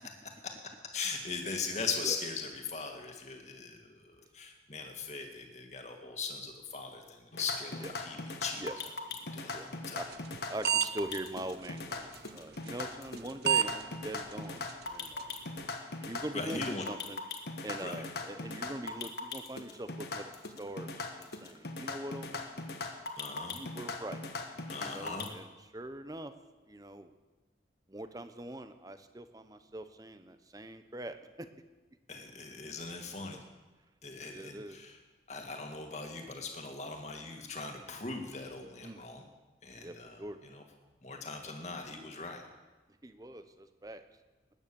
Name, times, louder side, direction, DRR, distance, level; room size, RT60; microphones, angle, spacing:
voice 1, 0.9-8.6 9.3-10.1 16.3-16.8 17.8-18.1 23.2-23.6 24.7-25.3 32.1-33.4 34.0-35.0 35.3-39.2 39.6-40.6 41.0-42.4, left 4 dB, 40° left, 3 dB, 2.1 m, -40 dB
sound 1, 7.3-25.3, left 3 dB, 65° left, 1.4 m, -40 dB
sound 2, 10.1-10.4 10.6-10.9 11.1-11.2 12.2-12.3 13.2-13.3 13.5-13.7 14.2-14.3 14.7-14.8 15.2-15.3, right 9 dB, 65° right, 0.6 m, -26 dB
voice 2, 10.5-15.4 16.0-16.6 16.9-17.2 17.6-20.3 20.6-22.6 23.5-24.2 24.8-25.5 25.7-26.3 26.7-27.1 27.9-31.5 33.3-33.4 34.3-34.8 38.8-39.0 39.7-40.4 43.0-44.0, right 1 dB, 20° right, 10 dB, 0.8 m, -42 dB
19.5 x 9.5 x 7.0 m, 1.2 s
head